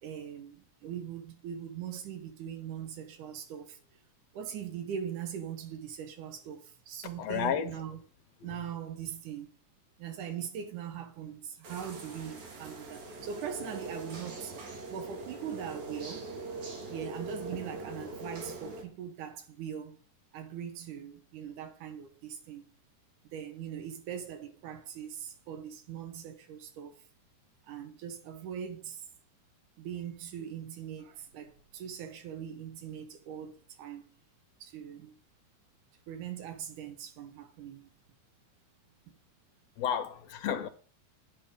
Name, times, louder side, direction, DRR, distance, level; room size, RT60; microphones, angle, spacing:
voice 1, 0.0-3.8 4.3-8.0 8.4-9.5 10.0-14.5 14.9-16.3 16.9-20.0 20.3-22.6 23.3-27.0 27.6-29.0 29.8-34.0 34.6-35.2 36.1-37.9, right 8 dB, 80° right, 2.8 m, -41 dB
voice 2, 7.2-7.8 39.8-40.7, left 8 dB, 70° left, 1.7 m, -31 dB
sound 1, 11.6-18.8, right 2 dB, 65° right, 3.2 m, -42 dB
10.0 x 8.4 x 3.6 m
omnidirectional pair, 3.6 m